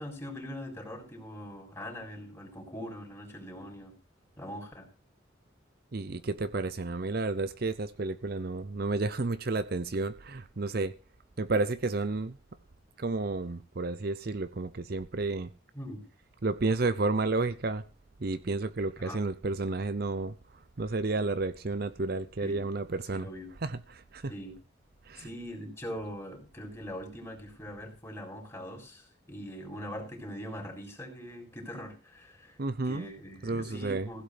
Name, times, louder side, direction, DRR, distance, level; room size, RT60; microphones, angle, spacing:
voice 1, 0.0-3.9 4.4-4.9 15.7-16.1 19.0-19.2 22.4-22.6 23.1-23.5 24.3-24.5 25.2-32.6 32.9-34.2, equal, 15° left, 3.9 m, -42 dB
voice 2, 5.9-10.9 11.4-12.4 13.0-15.5 16.4-17.8 18.2-20.4 20.8-23.3 23.6-24.3 25.0-25.3 32.6-33.1 33.4-34.1, right 3 dB, 50° right, 0.6 m, -31 dB
16.0 x 8.3 x 5.1 m
head